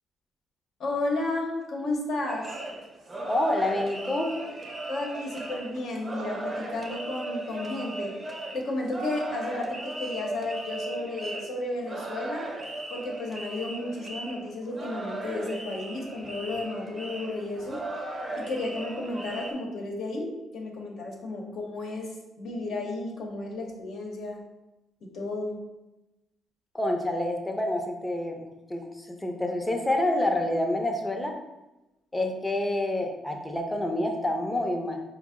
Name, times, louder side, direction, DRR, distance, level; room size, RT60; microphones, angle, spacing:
voice 1, 0.8-2.6 4.9-8.1 8.5-12.5 12.9-17.8 18.4-22.1 22.4-24.4 25.0-25.6, left 2 dB, 70° left, -1 dB, 0.8 m, -33 dB
sound 1, 2.3-19.5, right 2 dB, 30° right, 0.6 m, -37 dB
voice 2, 3.3-4.3 26.7-31.4 32.1-35.0, left 1 dB, 15° left, 3 dB, 0.6 m, -28 dB
4.2 x 2.0 x 3.6 m, 0.98 s
cardioid pair, 90°, 0 cm